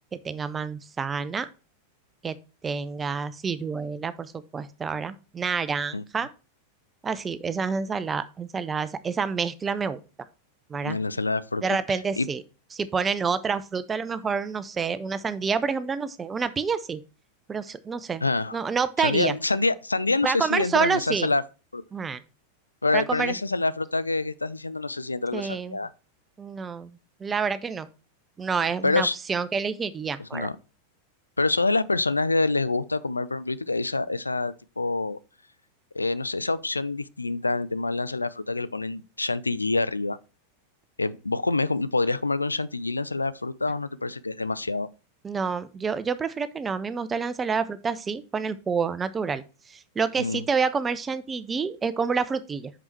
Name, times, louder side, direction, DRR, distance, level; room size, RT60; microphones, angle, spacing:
voice 1, 0.1-1.5 2.2-2.4 2.6-6.3 7.0-10.0 10.7-11.0 11.6-12.4 12.7-17.0 17.5-18.2 18.5-19.3 20.2-21.3 21.9-22.2 22.9-23.4 25.3-25.8 26.4-27.9 28.4-30.5 45.2-49.4 49.7-52.7, right 5 dB, 20° right, 0.6 m, -28 dB
voice 2, 10.8-11.6 11.9-12.3 18.2-18.6 19.0-21.4 21.7-21.8 22.8-25.9 28.8-29.2 30.2-30.6 31.4-35.2 35.9-40.2 41.0-44.9 50.2-50.4, left 3 dB, 80° left, 0.3 m, -26 dB
6.0 x 5.4 x 4.4 m
figure-of-eight pair, 90°, 0 cm